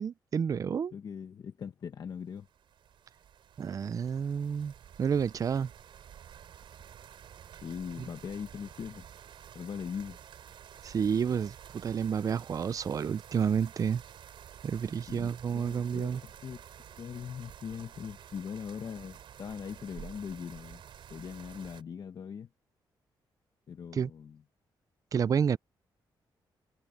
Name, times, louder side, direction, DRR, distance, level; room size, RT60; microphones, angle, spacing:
voice 1, 0.0-0.9 3.6-4.7 5.0-5.7 10.8-11.6 11.8-14.0 14.6-16.2 23.9-24.1 25.1-25.6, right 7 dB, 45° right, 0.4 m, -30 dB
voice 2, 0.9-2.5 7.6-9.0 9.5-10.2 15.1-16.6 17.0-20.8 21.1-22.5 23.7-24.4, left 7 dB, 55° left, 1.0 m, -41 dB
sound 1, 2.3-21.8, right 9 dB, 75° right, 4.5 m, -51 dB
cardioid pair, 100°, 8 cm